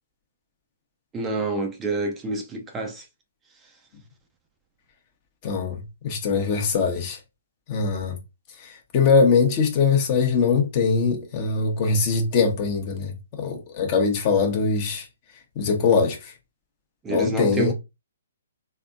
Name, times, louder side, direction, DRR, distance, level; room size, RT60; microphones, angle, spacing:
voice 1, 1.1-3.0 17.0-17.7, right 2 dB, 15° right, 0.6 m, -28 dB
voice 2, 5.4-7.2 7.7-8.2 8.6-15.1 15.5-16.3 17.1-17.7, left 5 dB, 35° left, 1.2 m, -22 dB
3.5 x 3.4 x 2.6 m
hypercardioid pair, 135°, 0 cm